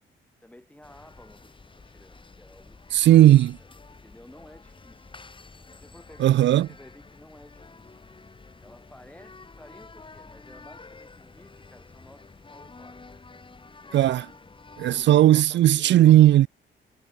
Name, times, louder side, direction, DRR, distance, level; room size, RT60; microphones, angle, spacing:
voice 1, 0.4-2.8 3.6-5.2 5.8-8.2 8.6-13.0 14.8-16.3, left 1 dB, 5° left, 5.6 m, -52 dB
sound 1, 0.8-15.0, left 3 dB, 25° left, 7.2 m, -49 dB
voice 2, 2.9-3.6 6.2-6.7 13.9-14.3 14.8-16.5, right 13 dB, 65° right, 0.6 m, -16 dB
cardioid pair, 90°, 20 cm